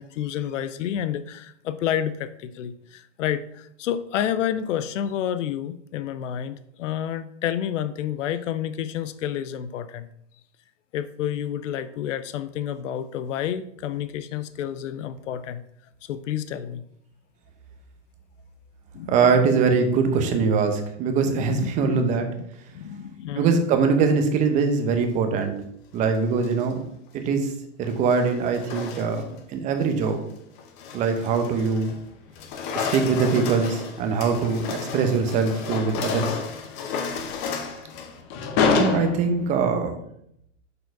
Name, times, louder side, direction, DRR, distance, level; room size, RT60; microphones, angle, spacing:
voice 1, 0.0-10.1 10.9-15.6 16.1-16.8 18.9-19.6 21.2-22.3 22.7-23.5, left 10 dB, 75° left, 13 dB, 0.6 m, -30 dB
voice 2, 19.1-22.3 23.4-25.5 25.9-26.8 27.1-27.5 27.8-30.2 30.9-31.9 32.8-36.4 38.8-40.0, right 5 dB, 20° right, 6 dB, 0.8 m, -22 dB
sound 1, 26.2-26.7 27.8-29.4 29.8-30.1 30.6-32.0 32.3-39.6, left 5 dB, 25° left, 0.7 m, -30 dB
6.5 x 4.6 x 4.6 m, 0.73 s
supercardioid pair, 155°, 38 cm